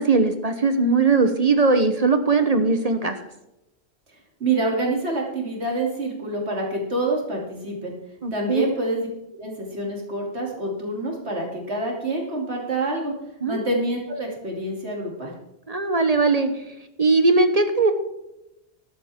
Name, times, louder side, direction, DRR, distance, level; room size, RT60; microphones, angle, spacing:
voice 1, 0.0-3.2 8.2-8.7 13.4-13.6 15.7-16.6 17.0-17.9, right 3 dB, 40° right, 8 dB, 1.0 m, -20 dB
voice 2, 4.4-7.9 8.3-9.1 9.3-13.1 13.5-15.3, right 2 dB, 80° right, -1 dB, 3.3 m, -27 dB
14.0 x 12.0 x 3.7 m, 0.88 s
omnidirectional pair, 1.1 m